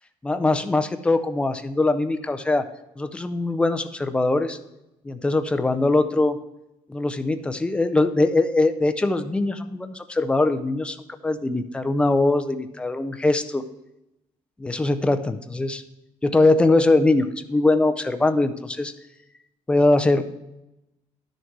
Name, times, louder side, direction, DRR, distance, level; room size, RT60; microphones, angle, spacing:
voice 1, 0.2-2.7 3.0-4.6 5.0-6.4 6.9-11.0 11.2-13.6 14.6-15.8 16.2-18.9 19.7-20.2, left 2 dB, 10° left, 10 dB, 0.4 m, -21 dB
11.0 x 6.6 x 4.6 m, 0.93 s
cardioid pair, 175°, 12 cm